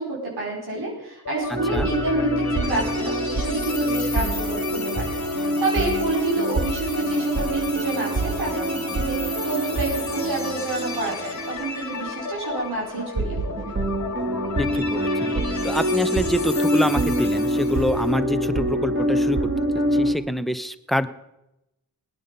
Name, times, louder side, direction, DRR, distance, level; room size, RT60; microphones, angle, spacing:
voice 1, 0.0-13.7, right 2 dB, 80° right, -4 dB, 5.0 m, -28 dB
sound 1, 1.2-18.1, left 5 dB, 45° left, 1.8 m, -34 dB
sound 2, 1.5-11.7 12.0-12.1 13.0-20.1, right 1 dB, 30° right, 2.5 m, -25 dB
voice 2, 14.6-15.3 15.6-21.1, equal, ahead, 11 dB, 0.9 m, -26 dB
19.0 x 9.7 x 5.4 m, 0.90 s
cardioid pair, 60°, 38 cm